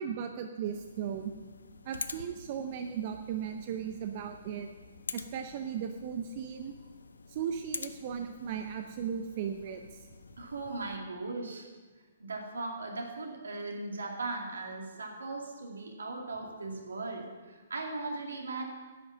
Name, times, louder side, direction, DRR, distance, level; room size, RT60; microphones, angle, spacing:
voice 1, 0.0-1.3 1.8-4.7 5.1-6.7 7.3-10.1, right 8 dB, 45° right, 6 dB, 0.7 m, -36 dB
sound 1, 0.6-11.0, left 4 dB, 80° left, 0.6 m, -47 dB
voice 2, 10.4-11.7 12.2-18.6, right 3 dB, 80° right, 1 dB, 2.3 m, -38 dB
10.5 x 8.8 x 6.1 m, 1.3 s
figure-of-eight pair, 130°, 0 cm